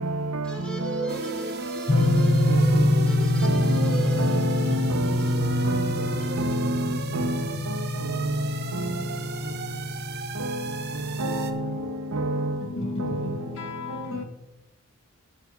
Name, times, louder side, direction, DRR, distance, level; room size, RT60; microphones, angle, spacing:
voice 1, 0.4-5.4 6.0-6.4, right 4 dB, 5° left, 2.2 m, -37 dB
sound 1, 1.1-11.5, right 5 dB, 50° right, 0.8 m, -38 dB
sound 2, 1.9-11.6, left 1 dB, 30° left, 0.6 m, -26 dB
voice 2, 3.4-5.9 6.4-7.4 11.2-11.5 12.1-12.5, right 1 dB, 80° right, 1.1 m, -27 dB
voice 3, 12.6-14.2, left 2 dB, 65° left, 1.6 m, -33 dB
16.5 x 7.6 x 2.6 m
head